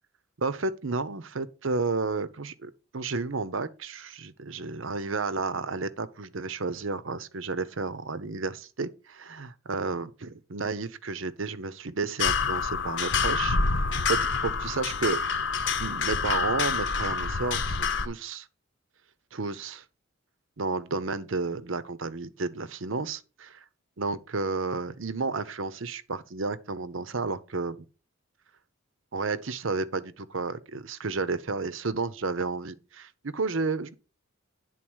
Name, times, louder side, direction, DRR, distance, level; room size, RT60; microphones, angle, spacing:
voice 1, 0.4-15.2 15.8-18.5 19.3-19.8 20.6-23.2 24.0-27.8 29.1-33.9, right 3 dB, 70° right, 0.8 m, -32 dB
sound 1, 12.2-18.1, left 5 dB, 60° left, 0.9 m, -27 dB
10.0 x 4.0 x 6.2 m
head